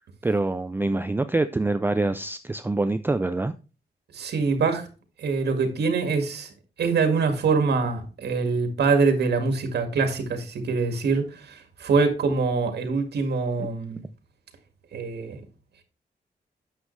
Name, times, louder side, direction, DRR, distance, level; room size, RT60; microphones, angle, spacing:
voice 1, 0.2-3.5, right 2 dB, 15° right, 0.4 m, -25 dB
voice 2, 4.1-4.9 5.2-14.0 14.9-15.4, right 4 dB, 90° right, 2.0 m, -24 dB
9.6 x 7.2 x 3.2 m
wide cardioid pair, 115°, 17 cm